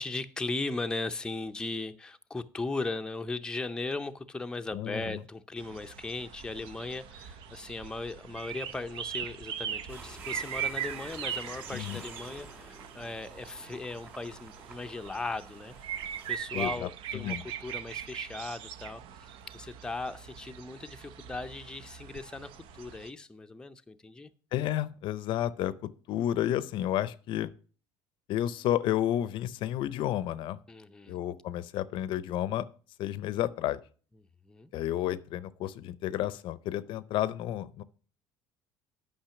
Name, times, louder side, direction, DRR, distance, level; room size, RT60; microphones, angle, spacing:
voice 1, 0.0-16.0 16.3-22.5 22.8-24.3 30.7-31.2 34.5-34.7, left 3 dB, 10° left, 0.5 m, -38 dB
voice 2, 4.7-5.2 11.7-12.0 16.5-16.9 17.1-17.4 24.5-27.5 28.3-30.6 31.1-32.7 33.0-33.8 34.7-37.8, left 12 dB, 65° left, 0.5 m, -31 dB
sound 1, 5.6-23.1, right 9 dB, 70° right, 0.8 m, -40 dB
sound 2, 9.9-16.4, right 2 dB, 20° right, 2.6 m, -50 dB
8.9 x 5.7 x 5.7 m
cardioid pair, 115°, 9 cm